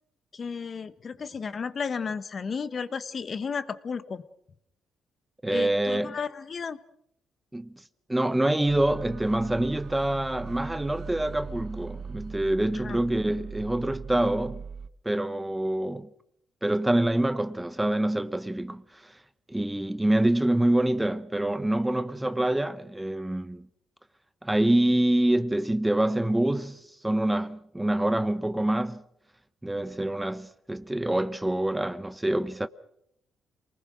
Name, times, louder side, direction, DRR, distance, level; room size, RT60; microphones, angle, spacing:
voice 1, 0.3-4.2 5.5-6.8 12.8-13.0, left 5 dB, 45° left, 1.2 m, -33 dB
voice 2, 5.4-6.2 7.5-7.8 8.1-14.6 15.0-16.1 16.6-19.2 19.5-23.7 24.4-29.0 29.6-32.7, right 1 dB, 10° right, 0.9 m, -26 dB
sound 1, 8.7-14.9, right 6 dB, 55° right, 0.9 m, -40 dB
27.5 x 19.5 x 6.3 m
cardioid pair, 90°, 0 cm